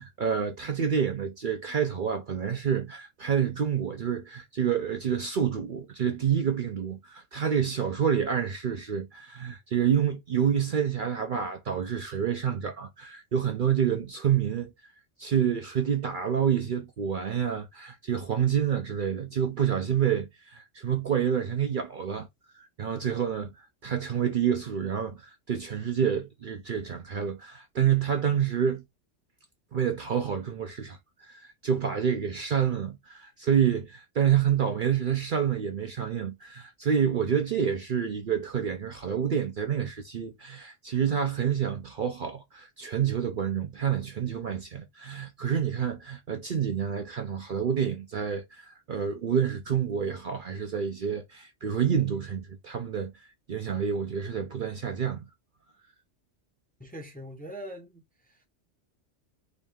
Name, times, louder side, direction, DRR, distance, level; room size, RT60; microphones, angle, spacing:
voice 1, 0.0-14.7 15.2-22.3 22.5-28.8 29.7-53.1 53.5-55.3, right 8 dB, 55° right, 0.7 m, -28 dB
voice 2, 56.8-58.5, equal, 10° left, 0.7 m, -42 dB
3.9 x 2.7 x 3.5 m
omnidirectional pair, 1.2 m